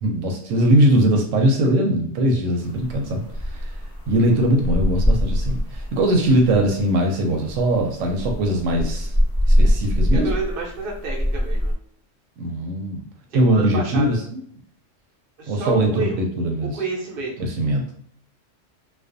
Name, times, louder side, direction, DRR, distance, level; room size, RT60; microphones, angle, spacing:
voice 1, 0.0-3.7 4.1-9.1 9.5-10.3 12.4-13.0 13.3-14.4 15.5-16.8 17.4-17.8, right 1 dB, 85° right, 2 dB, 0.9 m, -20 dB
sound 1, 2.6-11.7, equal, 20° left, 1.0 m, -24 dB
voice 2, 10.1-11.7 13.3-14.2 15.4-16.2 16.7-17.3, right 3 dB, 55° right, -2 dB, 0.8 m, -29 dB
2.4 x 2.2 x 2.5 m, 0.62 s
omnidirectional pair, 1.3 m